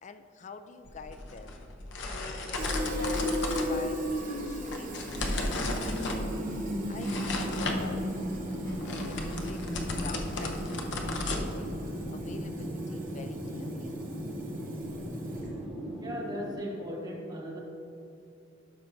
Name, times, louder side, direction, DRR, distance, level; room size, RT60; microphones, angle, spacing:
voice 1, 0.0-1.6 2.1-5.0 5.5-6.3 6.9-8.2 8.9-11.7 12.1-14.0, left 3 dB, 35° left, 9 dB, 0.4 m, -47 dB
sound 1, 0.9-12.0, left 2 dB, 65° left, 0.8 m, -35 dB
Fill (with liquid), 2.5-15.7, equal, 40° right, 1.1 m, -36 dB
sound 2, 5.1-16.5, right 1 dB, ahead, 1.3 m, -39 dB
voice 2, 16.0-17.6, equal, 20° right, -3 dB, 1.2 m, -37 dB
12.0 x 5.6 x 2.7 m, 2.8 s
head